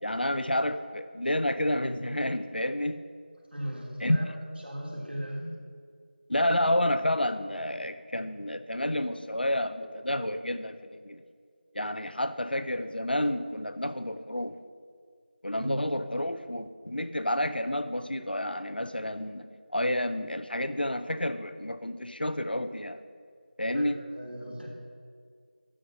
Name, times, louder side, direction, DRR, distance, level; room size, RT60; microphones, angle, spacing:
voice 1, 0.0-3.0 4.0-4.3 6.3-11.2 11.7-14.6 15.4-19.5 19.7-23.0 23.6-24.0, left 1 dB, 65° left, 11 dB, 0.7 m, -30 dB
voice 2, 3.5-4.2 4.6-5.5 15.6-15.9 23.7-23.9 24.1-24.7, equal, 80° right, -2 dB, 3.3 m, -37 dB
11.5 x 6.4 x 6.3 m, 2.1 s
figure-of-eight pair, 180°, 6 cm